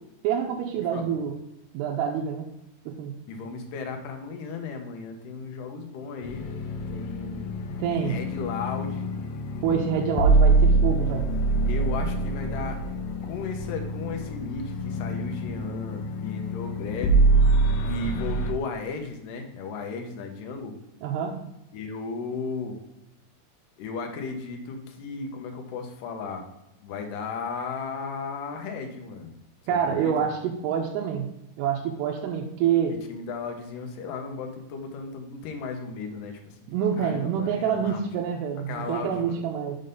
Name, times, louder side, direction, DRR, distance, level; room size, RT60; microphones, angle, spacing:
voice 1, 0.2-1.4 1.7-2.5 2.9-3.1 7.8-8.2 9.6-11.3 21.0-21.3 29.7-31.3 31.6-32.9 36.7-39.8, right 8 dB, 90° right, 0 dB, 2.7 m, -27 dB
voice 2, 3.3-7.5 7.9-9.1 11.6-12.8 13.2-17.3 17.9-20.8 21.7-22.8 23.8-26.4 26.8-29.3 29.8-30.1 33.1-36.6 37.0-38.1 38.7-39.2, left 4 dB, 70° left, 4 dB, 2.1 m, -35 dB
sound 1, 6.2-18.5, right 2 dB, 90° left, 2.0 m, -25 dB
6.5 x 3.8 x 5.2 m, 0.89 s
omnidirectional pair, 4.7 m